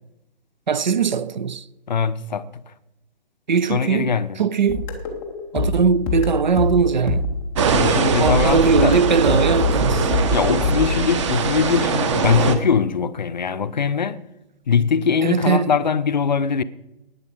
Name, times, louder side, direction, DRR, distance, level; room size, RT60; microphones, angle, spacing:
voice 1, 0.7-1.6 3.5-4.9 5.5-7.3 7.6-10.1 15.2-15.7, right 5 dB, 50° right, 0.6 m, -20 dB
voice 2, 1.9-2.6 3.7-4.4 7.7-9.0 10.3-14.2 14.7-16.6, left 6 dB, 45° left, 0.7 m, -21 dB
sound 1, 4.7-7.9 8.3-10.9, left 3 dB, 5° left, 0.5 m, -24 dB
sound 2, 7.6-12.6, right 5 dB, 30° right, 1.1 m, -21 dB
18.5 x 7.3 x 5.0 m
figure-of-eight pair, 140°, 30 cm